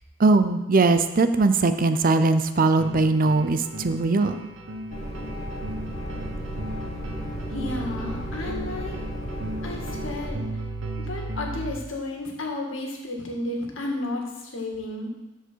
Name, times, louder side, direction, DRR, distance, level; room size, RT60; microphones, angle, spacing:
voice 1, 0.2-4.4, right 3 dB, 45° right, 10 dB, 0.5 m, -20 dB
sound 1, 2.8-11.7, right 1 dB, 70° right, 0.9 m, -36 dB
sound 2, 4.9-10.3, equal, 35° left, 1.8 m, -34 dB
voice 2, 7.5-9.0 9.6-10.5 11.0-15.1, left 2 dB, 75° left, 0 dB, 1.9 m, -32 dB
13.5 x 5.0 x 4.6 m, 1.0 s
head